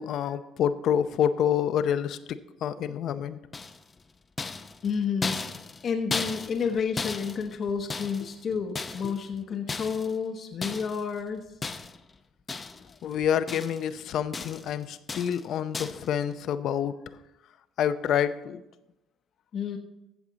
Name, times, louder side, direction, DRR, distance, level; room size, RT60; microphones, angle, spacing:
voice 1, 0.0-2.2 2.6-3.4 13.0-17.0 17.8-18.6, left 9 dB, 60° left, 12 dB, 0.6 m, -27 dB
sound 1, 3.5-4.0 4.4-6.7 7.0-8.4 8.7-9.3 9.7-10.2 10.6-11.0 11.6-12.1 12.5-13.0 13.2-13.9 14.3-14.7 15.1-15.4 15.7-16.1, left 4 dB, 25° left, 0.6 m, -35 dB
voice 2, 4.8-5.4 5.8-11.5 19.5-19.8, left 6 dB, 45° left, 4 dB, 1.0 m, -30 dB
15.0 x 7.2 x 4.0 m, 0.94 s
cardioid pair, 115°, 0 cm